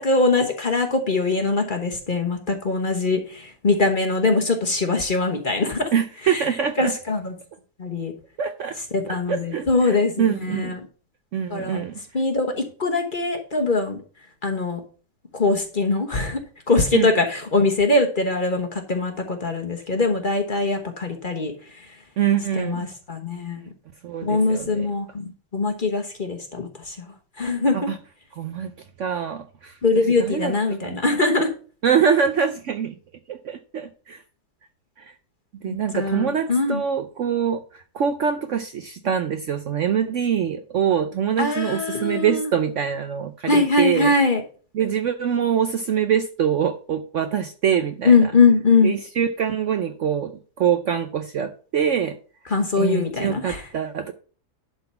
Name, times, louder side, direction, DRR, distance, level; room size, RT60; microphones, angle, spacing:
voice 1, 0.0-5.9 6.3-6.4 6.8-7.3 7.8-8.1 8.9-10.8 11.5-11.8 12.1-14.0 14.4-14.8 15.3-16.4 16.7-21.5 22.6-23.6 24.2-26.9 27.4-27.7 29.8-31.5 35.6-36.8 41.4-42.5 43.5-44.4 48.0-48.9 52.5-53.6, left 3 dB, 35° left, 1.2 m, -22 dB
voice 2, 5.9-6.9 8.4-8.8 9.1-10.8 11.3-12.0 16.9-17.1 22.2-22.9 23.6-23.7 24.0-24.9 27.7-28.0 28.3-28.7 29.0-30.5 30.8-31.0 31.8-32.9 33.3-34.2 35.0-35.1 35.6-44.1 44.7-48.3 48.8-52.2 52.8-54.1, right 8 dB, 60° right, 0.8 m, -24 dB
11.5 x 4.0 x 5.6 m
omnidirectional pair, 1.7 m